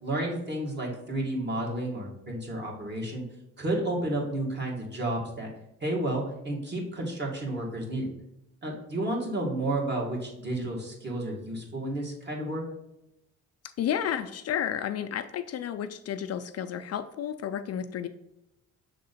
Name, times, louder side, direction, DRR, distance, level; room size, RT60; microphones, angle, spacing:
voice 1, 0.0-3.2 3.6-5.5 5.8-8.1 8.6-12.6, right 1 dB, 35° right, -2 dB, 2.1 m, -31 dB
voice 2, 13.8-18.1, left 9 dB, 55° left, 10 dB, 0.5 m, -31 dB
6.7 x 3.7 x 4.2 m, 0.91 s
cardioid pair, 90°, 30 cm